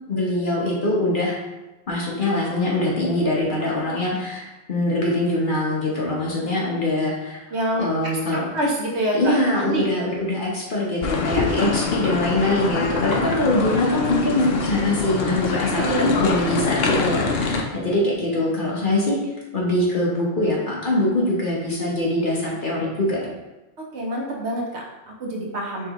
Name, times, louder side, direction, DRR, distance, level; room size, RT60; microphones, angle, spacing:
voice 1, 0.1-1.4 1.9-7.4 7.8-8.5 9.1-19.2 19.5-23.2, left 1 dB, 45° left, -4 dB, 1.0 m, -23 dB
voice 2, 7.5-10.2 15.7-16.4 23.8-25.9, right 1 dB, 65° right, -2 dB, 1.1 m, -27 dB
sound 1, 11.0-17.6, left 4 dB, 60° left, 0.7 m, -24 dB
4.5 x 3.8 x 3.0 m, 1.0 s
omnidirectional pair, 1.3 m